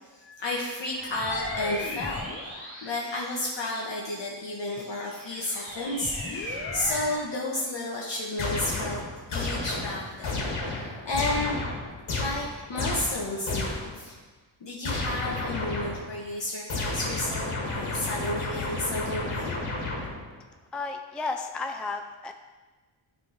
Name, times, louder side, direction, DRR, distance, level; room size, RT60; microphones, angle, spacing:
voice 1, 0.1-9.0 9.3-11.6 12.2-14.1 14.6-19.5, left 2 dB, 60° left, -4 dB, 1.3 m, -32 dB
sound 1, 0.9-3.9 4.4-7.3, left 2 dB, 25° left, 2.8 m, -37 dB
sound 2, 8.4-14.0 14.8-16.1 16.7-20.4, left 2 dB, 90° left, 1.9 m, -32 dB
voice 2, 20.7-22.3, left 3 dB, ahead, 5 dB, 0.3 m, -33 dB
9.7 x 3.8 x 5.4 m, 1.2 s
wide cardioid pair, 125°, 48 cm